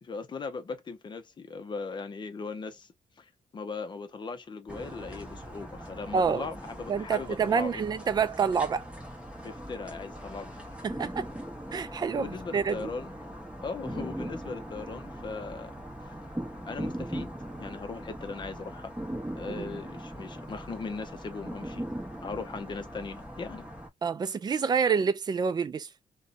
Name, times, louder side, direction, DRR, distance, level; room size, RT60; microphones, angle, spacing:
voice 1, 0.0-7.8 9.4-10.6 12.1-13.3 13.6-15.7 16.7-17.3 17.6-18.9 19.4-21.9 22.2-23.7, left 4 dB, 35° left, 0.6 m, -39 dB
sound 1, 4.7-23.9, right 1 dB, 10° right, 0.9 m, -40 dB
voice 2, 6.1-6.5 6.9-8.8 10.8-11.3 11.7-12.9 19.5-19.8 24.0-25.9, right 6 dB, 30° right, 0.4 m, -28 dB
2.6 x 2.2 x 2.4 m
wide cardioid pair, 145°, 14 cm